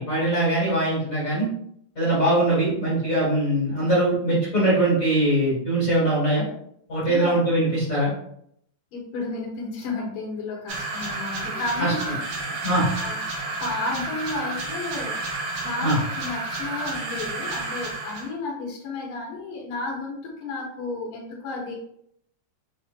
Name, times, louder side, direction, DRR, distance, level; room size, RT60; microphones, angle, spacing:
voice 1, 0.0-1.5 1.9-6.4 6.9-8.1 11.8-11.9 12.6-12.8 15.8-16.0, right 1 dB, 35° left, -9 dB, 1.6 m, -22 dB
voice 2, 7.0-7.4 8.9-12.0 12.9-21.8, left 3 dB, 60° left, -2 dB, 1.5 m, -32 dB
sound 1, 10.7-18.3, right 2 dB, 80° right, 1.3 m, -31 dB
6.0 x 2.8 x 2.5 m, 0.70 s
omnidirectional pair, 3.8 m